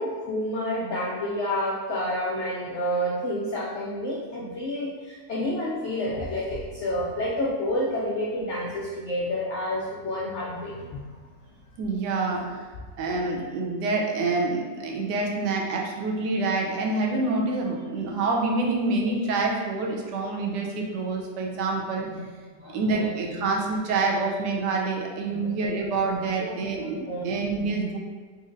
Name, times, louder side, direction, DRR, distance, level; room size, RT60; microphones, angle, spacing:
voice 1, 0.0-11.1 22.1-22.3 22.6-23.6 25.3-25.7 26.4-27.3, left 1 dB, 85° left, -4 dB, 0.6 m, -30 dB
voice 2, 11.8-12.6 13.0-22.1 22.7-28.0, right 3 dB, 90° right, 0 dB, 1.2 m, -27 dB
4.2 x 2.7 x 2.5 m, 1.5 s
omnidirectional pair, 1.8 m